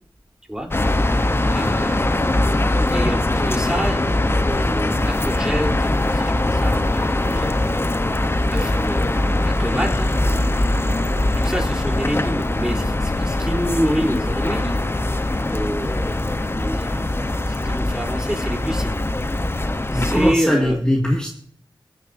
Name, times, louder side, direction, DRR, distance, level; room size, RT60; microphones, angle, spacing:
sound 1, 0.7-20.3, left 1 dB, 30° left, 0.8 m, -21 dB
voice 1, 1.5-7.9 8.5-10.1 11.4-14.8 15.4-17.0 17.5-19.0 19.9-20.8, equal, 10° right, 0 dB, 3.4 m, -27 dB
voice 2, 19.9-21.3, left 1 dB, 10° left, 0 dB, 1.9 m, -20 dB
22.0 x 10.0 x 2.6 m, 0.64 s
wide cardioid pair, 65°, 8 cm